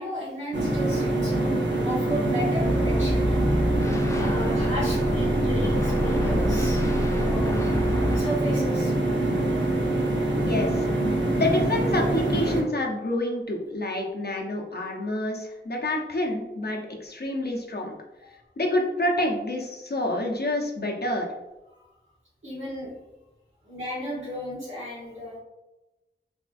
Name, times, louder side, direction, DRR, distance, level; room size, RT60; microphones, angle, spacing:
voice 1, 0.0-3.8 4.2-6.8 7.1-7.7 8.1-8.9 22.4-22.9 23.6-25.4, equal, 80° right, -10 dB, 1.3 m, -34 dB
sound 1, 0.5-12.6, right 1 dB, 65° right, 0.7 m, -24 dB
sound 2, 2.6-8.2, equal, 15° left, 0.4 m, -28 dB
voice 2, 10.4-10.9 11.3-18.0 18.6-21.3, left 1 dB, 55° left, 0 dB, 0.6 m, -27 dB
3.5 x 2.4 x 2.4 m, 1.0 s
wide cardioid pair, 40°, 20 cm